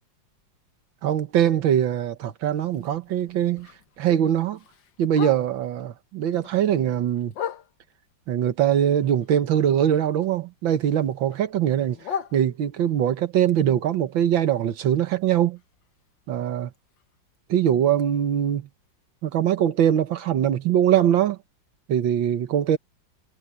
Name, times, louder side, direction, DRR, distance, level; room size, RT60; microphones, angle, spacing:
voice 1, 1.0-3.7 4.0-4.6 5.0-7.3 8.3-15.6 16.3-16.7 17.5-18.7 19.2-21.4 21.9-22.8, right 10 dB, 90° right, 1.9 m, -22 dB
Bark, 2.6-5.8 6.2-8.1 8.6-10.4 10.7-13.0 13.4-17.4 17.7-17.8 18.1-18.5 18.9-19.0 19.3-19.4 20.0-20.1, left 8 dB, 75° left, 2.0 m, -40 dB
omnidirectional pair, 2.1 m